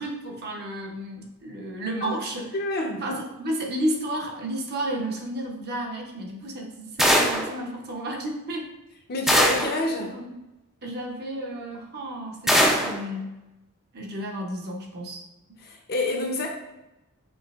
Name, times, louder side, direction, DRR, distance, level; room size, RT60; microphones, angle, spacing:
voice 1, 0.0-2.6 3.0-8.7 10.1-10.3 10.8-13.3 13.9-15.2, right 1 dB, 45° right, 0 dB, 0.7 m, -32 dB
voice 2, 2.5-3.2 9.1-10.1 15.6-16.5, left 2 dB, 45° left, 1 dB, 0.7 m, -28 dB
sound 1, 7.0-7.5 9.3-9.8 12.5-13.0, equal, ahead, 0.4 m, -20 dB
5.4 x 2.7 x 2.4 m, 0.99 s
head